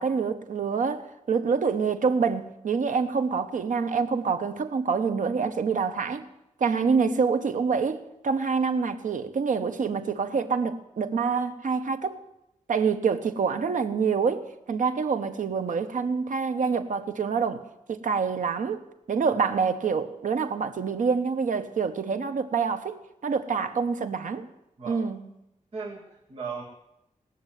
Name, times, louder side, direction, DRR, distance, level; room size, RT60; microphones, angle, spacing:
voice 1, 0.0-6.3 6.6-12.2 12.7-17.6 17.9-24.5 24.9-25.2, right 5 dB, 80° right, 1.0 m, -26 dB
voice 2, 25.7-26.6, right 5 dB, 45° right, 2.1 m, -37 dB
18.0 x 6.8 x 9.2 m
wide cardioid pair, 165°, 13 cm